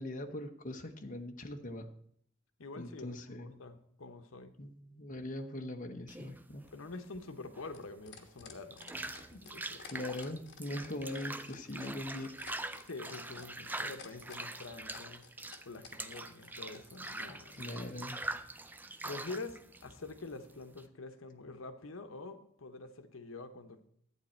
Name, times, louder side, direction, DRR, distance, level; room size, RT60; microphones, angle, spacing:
voice 1, 0.0-1.9 2.8-3.6 4.6-6.6 9.9-12.3 17.5-18.2, left 1 dB, 40° left, 5 dB, 1.0 m, -41 dB
voice 2, 2.6-4.5 6.7-9.8 12.8-15.2 15.6-17.7 19.0-23.8, left 3 dB, 75° left, 8 dB, 1.0 m, -46 dB
sound 1, 6.1-20.8, right 2 dB, 10° right, 0.4 m, -44 dB
sound 2, 6.6-17.2 18.3-18.4, left 6 dB, 55° left, 1.3 m, -53 dB
11.5 x 8.8 x 4.4 m, 0.67 s
head